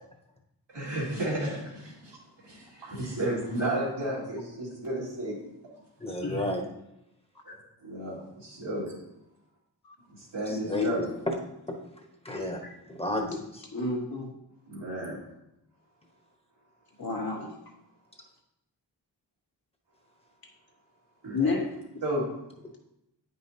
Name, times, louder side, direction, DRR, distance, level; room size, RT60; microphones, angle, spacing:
voice 1, 0.7-2.2 2.4-5.4 5.6-5.7 7.8-8.9 10.1-11.0 14.7-15.2 21.2-21.4 22.0-22.3, right 1 dB, 80° right, -5 dB, 2.3 m, -32 dB
voice 2, 6.0-6.6 10.6-10.9 11.7-11.8 12.2-12.6 12.9-13.6 21.4-21.5, left 2 dB, 15° left, 2 dB, 1.1 m, -31 dB
voice 3, 13.7-14.3 17.0-17.5 21.3-21.7, left 3 dB, 60° left, -1 dB, 1.4 m, -29 dB
8.6 x 5.4 x 2.8 m, 0.83 s
wide cardioid pair, 65°, 41 cm